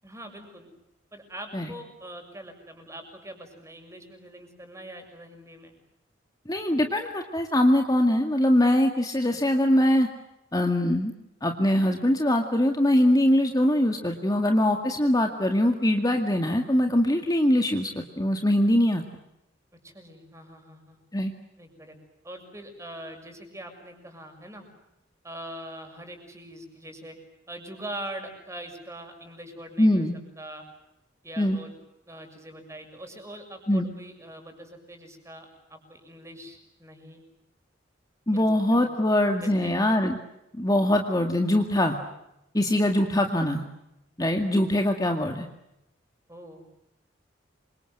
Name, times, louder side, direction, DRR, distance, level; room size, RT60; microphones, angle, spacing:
voice 1, 0.0-0.7 1.1-5.7 19.8-21.0 21.6-22.0 22.2-24.7 25.2-27.2 27.5-30.1 30.4-30.6 31.2-31.8 32.1-37.2 38.3-39.0 39.4-39.8 44.3-44.4 46.3-46.6, right 1 dB, 15° right, 5 dB, 6.7 m, -42 dB
voice 2, 6.5-10.1 10.5-11.1 11.4-19.0 21.1-21.3 29.8-30.2 31.4-31.6 33.7-33.9 38.3-40.2 40.5-42.0 42.5-43.6 44.2-45.5, left 1 dB, 20° left, 4 dB, 2.1 m, -22 dB
28.0 x 26.0 x 7.9 m, 0.88 s
head